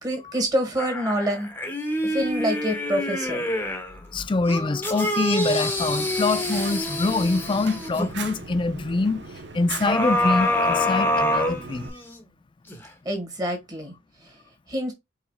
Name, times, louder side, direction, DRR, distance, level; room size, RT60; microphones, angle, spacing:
voice 1, 0.0-1.5 2.0-3.4 13.0-13.9 14.7-14.9, equal, 20° right, 1.6 m, -26 dB
sound 1, 0.8-3.9 4.5-8.1 9.8-12.2 12.7-12.8, left 1 dB, 10° left, 1.0 m, -26 dB
voice 2, 4.1-11.9, left 3 dB, 25° left, 0.4 m, -25 dB
Fire, 5.8-11.9, right 4 dB, 65° right, 0.8 m, -39 dB
4.8 x 4.1 x 2.2 m
head